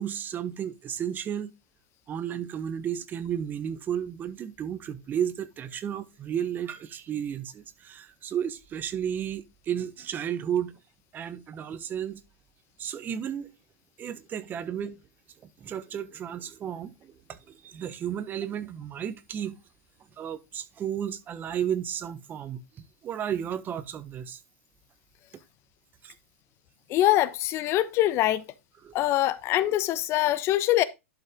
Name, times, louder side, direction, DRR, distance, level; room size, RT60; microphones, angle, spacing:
voice 1, 0.0-1.5 2.1-10.7 11.1-12.2 12.8-13.5 14.0-15.0 15.6-19.6 20.2-24.4 26.0-26.1 28.8-28.9, right 9 dB, 25° right, 1.1 m, -33 dB
voice 2, 26.9-28.4 28.9-30.8, left 14 dB, 35° left, 1.0 m, -23 dB
11.5 x 5.4 x 3.7 m
hypercardioid pair, 130°, 8 cm